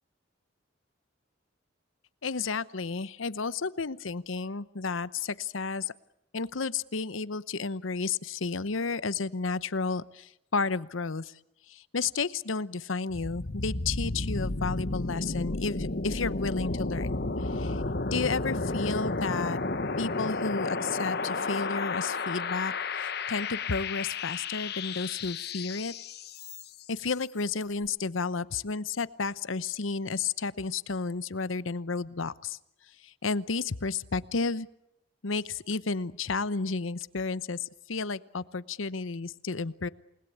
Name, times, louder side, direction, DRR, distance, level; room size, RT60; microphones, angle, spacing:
voice 1, 2.2-5.9 6.3-11.3 11.7-17.8 18.1-19.6 20.0-25.9 26.9-32.6 33.0-34.7 35.2-39.9, left 4 dB, 80° left, 16 dB, 0.9 m, -32 dB
sound 1, 13.1-26.9, left 3 dB, 50° left, 1.2 m, -32 dB
28.5 x 20.5 x 8.5 m, 0.82 s
head